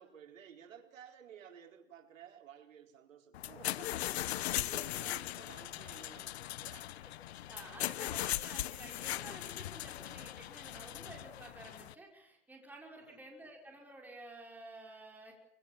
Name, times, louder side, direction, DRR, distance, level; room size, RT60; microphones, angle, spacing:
voice 1, 0.0-6.9 7.7-8.0 13.0-13.2, right 8 dB, 90° right, 4 dB, 4.4 m, -55 dB
sound 1, 3.3-11.9, left 14 dB, 55° left, 1.0 m, -39 dB
voice 2, 5.6-6.2 7.0-7.1 7.4-15.3, right 2 dB, 5° right, 0 dB, 5.4 m, -52 dB
25.0 x 24.5 x 7.5 m, 0.79 s
hypercardioid pair, 160°, 38 cm